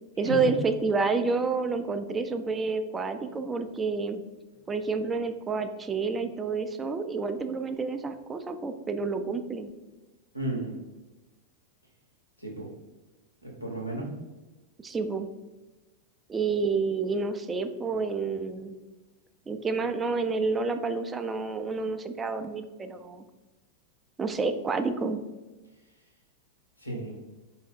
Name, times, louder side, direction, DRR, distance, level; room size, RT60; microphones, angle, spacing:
voice 1, 0.2-4.2 4.7-9.7 14.8-15.3 16.3-18.7 19.5-23.2 24.2-25.2, right 4 dB, 15° right, 8 dB, 0.3 m, -29 dB
voice 2, 10.3-10.7 12.4-12.7 13.4-14.1 26.8-27.1, right 1 dB, 90° left, 0 dB, 1.0 m, -33 dB
4.4 x 2.7 x 3.5 m, 1.1 s
figure-of-eight pair, 90°, 0 cm